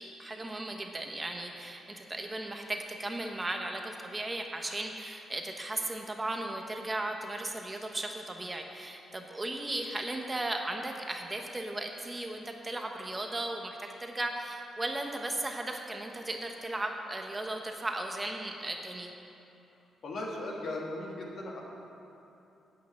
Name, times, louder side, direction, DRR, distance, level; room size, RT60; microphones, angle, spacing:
voice 1, 0.0-19.1, right 2 dB, 20° right, 3 dB, 1.1 m, -36 dB
voice 2, 20.0-21.6, left 2 dB, 60° left, -2 dB, 2.3 m, -37 dB
8.5 x 8.4 x 8.4 m, 2.8 s
cardioid pair, 80°, 0 cm